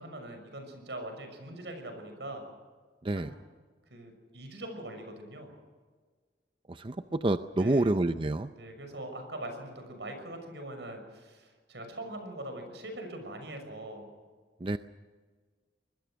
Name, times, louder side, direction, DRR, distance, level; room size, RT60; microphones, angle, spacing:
voice 1, 0.0-2.4 3.1-3.4 3.9-5.5 7.5-7.9 8.6-14.1, right 1 dB, 80° right, 6 dB, 6.3 m, -42 dB
voice 2, 6.7-8.5 14.6-14.8, right 2 dB, 30° right, 10 dB, 0.6 m, -28 dB
25.0 x 20.5 x 6.4 m, 1.5 s
head